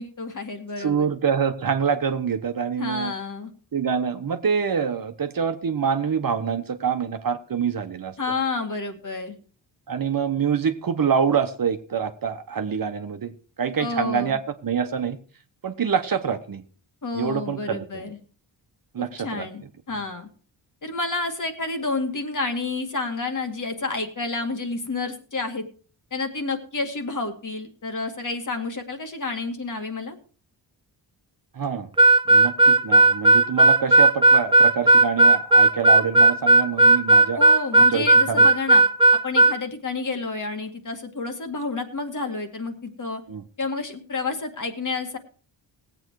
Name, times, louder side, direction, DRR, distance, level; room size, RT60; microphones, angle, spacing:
voice 1, 0.0-1.1 2.8-3.5 8.2-9.4 13.8-14.4 17.0-18.2 19.0-20.3 20.8-25.7 26.1-30.2 37.4-38.8 39.2-43.2 43.6-45.2, left 3 dB, 40° left, 5 dB, 2.1 m, -30 dB
voice 2, 0.8-3.1 3.7-8.1 9.9-15.2 15.6-16.6 17.1-18.0 18.9-19.5 31.5-31.9 32.3-37.4 37.7-38.5 43.3-43.4, right 7 dB, 45° right, 7 dB, 1.2 m, -26 dB
Harmonica, 32.0-39.6, right 2 dB, 10° right, 0.6 m, -15 dB
18.0 x 8.2 x 4.7 m, 0.42 s
cardioid pair, 90°, 45 cm